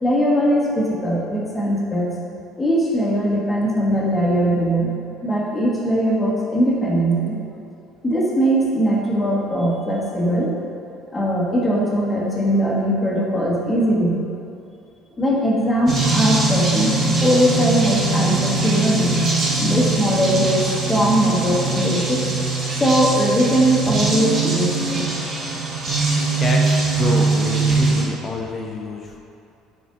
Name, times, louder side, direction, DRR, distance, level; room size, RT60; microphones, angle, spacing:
voice 1, 0.0-2.1 2.6-4.9 5.2-7.4 8.0-10.5 11.1-14.2 15.2-16.9 17.2-19.2 19.6-22.3 22.8-25.1, equal, 15° left, -5 dB, 1.6 m, -20 dB
sound 1, 15.9-28.0, right 3 dB, 35° right, 1.4 m, -21 dB
voice 2, 26.2-29.2, left 3 dB, 30° left, 0 dB, 0.8 m, -27 dB
10.0 x 5.2 x 2.7 m, 2.7 s
cardioid pair, 105°, 0 cm